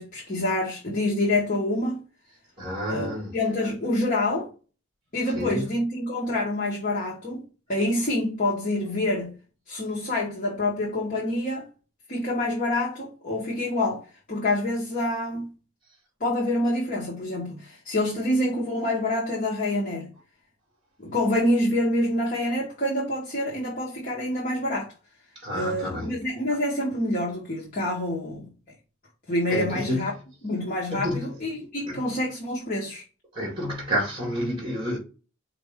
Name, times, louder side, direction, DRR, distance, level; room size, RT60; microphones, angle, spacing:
voice 1, 0.0-2.0 2.9-4.5 5.1-7.4 7.7-9.4 9.7-11.7 12.1-15.5 16.2-20.1 21.0-24.9 25.5-28.5 29.3-30.1 30.4-33.0, left 1 dB, 40° left, 0.9 m, -27 dB
voice 2, 2.6-3.3 5.3-5.7 25.3-26.1 29.5-30.1 30.9-31.3 31.9-32.0 33.3-35.0, equal, 25° right, 1.6 m, -29 dB
4.4 x 2.5 x 3.4 m
head